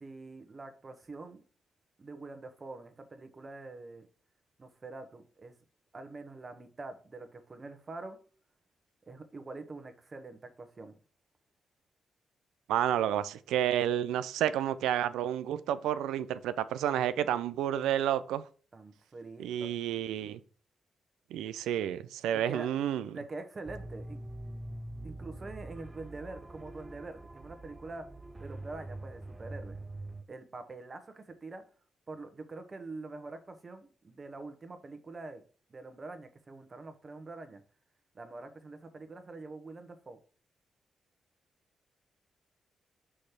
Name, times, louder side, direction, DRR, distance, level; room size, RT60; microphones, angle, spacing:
voice 1, 0.0-1.4 2.0-4.1 4.6-5.5 5.9-8.2 9.1-11.0 18.7-19.7 22.3-22.7 23.1-24.2 25.0-28.1 28.4-29.8 30.3-31.6 32.1-35.4 35.7-37.6 38.1-40.2, right 3 dB, 40° right, 8 dB, 1.2 m, -45 dB
voice 2, 12.7-18.4 19.4-20.4 21.3-23.1, right 10 dB, 85° right, 15 dB, 0.4 m, -30 dB
sound 1, 23.7-30.2, right 1 dB, 25° right, 0.6 m, -44 dB
6.3 x 3.2 x 5.8 m, 0.39 s
supercardioid pair, 50°, 0 cm